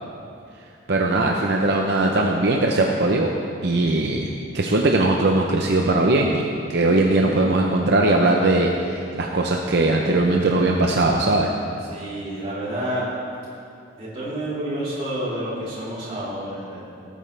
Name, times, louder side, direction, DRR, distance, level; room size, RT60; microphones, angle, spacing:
voice 1, 0.9-3.3 3.6-4.3 4.5-11.5, right 2 dB, 55° right, 1 dB, 0.7 m, -20 dB
voice 2, 7.1-7.5 11.9-13.0 14.0-16.8, right 1 dB, 30° right, -10 dB, 3.2 m, -29 dB
18.5 x 9.0 x 3.3 m, 2.5 s
head